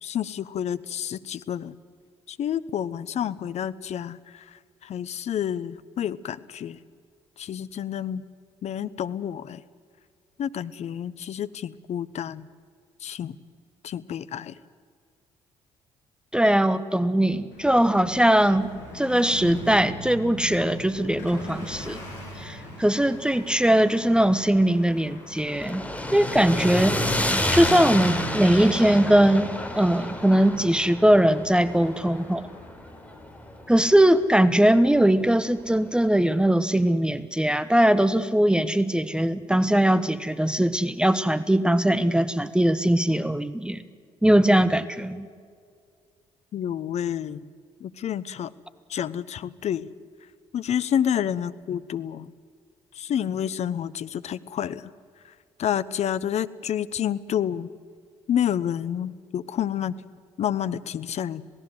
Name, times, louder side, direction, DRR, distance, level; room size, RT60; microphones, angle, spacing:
voice 1, 0.0-1.7 2.3-6.8 7.4-8.2 8.6-9.6 10.4-12.5 13.0-13.4 13.8-14.6 46.5-47.5 47.8-48.5 48.9-49.9 50.5-52.3 52.9-54.9 55.6-57.7 58.3-60.0 60.4-61.4, left 9 dB, 55° left, 16 dB, 0.9 m, -29 dB
voice 2, 16.3-22.0 22.4-25.8 26.1-32.5 33.7-43.8 44.2-45.3, right 1 dB, 5° right, 14 dB, 1.1 m, -21 dB
sound 1, 17.5-36.1, left 2 dB, 70° left, 6.9 m, -43 dB
sound 2, 25.4-33.6, left 1 dB, 10° left, 4.2 m, -29 dB
27.0 x 18.0 x 7.9 m, 2.1 s
hypercardioid pair, 50°, 14 cm